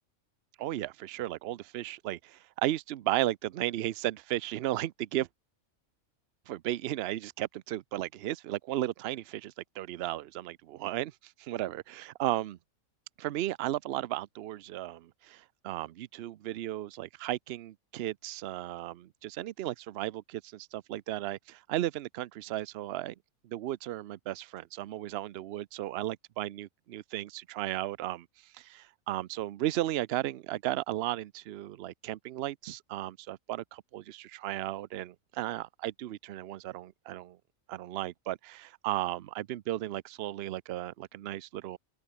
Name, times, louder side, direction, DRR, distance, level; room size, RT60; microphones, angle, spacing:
voice 1, 0.6-5.3 6.5-12.6 13.2-23.1 23.4-28.3 28.5-37.4 37.7-41.8, right 14 dB, 60° right, 0.7 m, -35 dB
open air
omnidirectional pair, 1.5 m